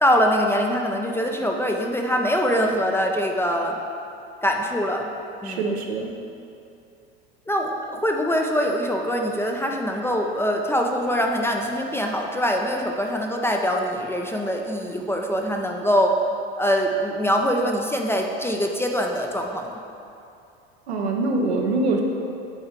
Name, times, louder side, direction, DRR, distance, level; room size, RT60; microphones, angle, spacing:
voice 1, 0.0-3.8 4.4-5.1 5.4-5.6 7.5-16.1 16.6-19.7, equal, 10° left, 1 dB, 0.3 m, -23 dB
voice 2, 5.4-6.1 20.9-22.0, right 3 dB, 85° right, 1 dB, 0.8 m, -24 dB
8.1 x 3.5 x 3.5 m, 2.6 s
hypercardioid pair, 80°, 32 cm